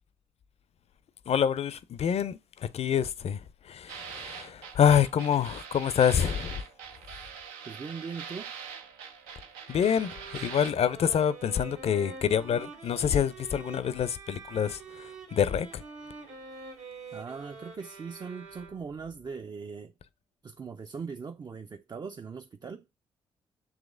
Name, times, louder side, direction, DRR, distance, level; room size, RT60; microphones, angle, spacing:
voice 1, 1.3-6.7 9.7-15.8, left 8 dB, 50° left, 0.5 m, -27 dB
sound 1, 3.9-10.7, right 7 dB, 80° right, 0.5 m, -43 dB
voice 2, 7.7-8.5 17.1-19.9 20.4-22.8, right 5 dB, 30° right, 0.4 m, -40 dB
sound 2, 9.6-19.1, right 4 dB, 65° right, 1.1 m, -46 dB
7.2 x 3.0 x 2.4 m
hypercardioid pair, 45°, 14 cm